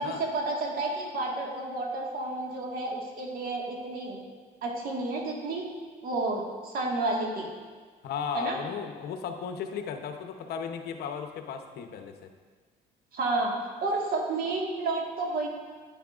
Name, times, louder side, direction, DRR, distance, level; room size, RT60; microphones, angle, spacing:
voice 1, 0.0-4.2 4.6-5.6 6.0-7.5 8.3-8.6 13.1-13.5 13.8-15.5, right 2 dB, 60° right, -1 dB, 1.6 m, -31 dB
voice 2, 8.0-12.3, left 7 dB, 70° left, 6 dB, 0.8 m, -35 dB
10.0 x 9.1 x 2.4 m, 1.5 s
cardioid pair, 110°, 17 cm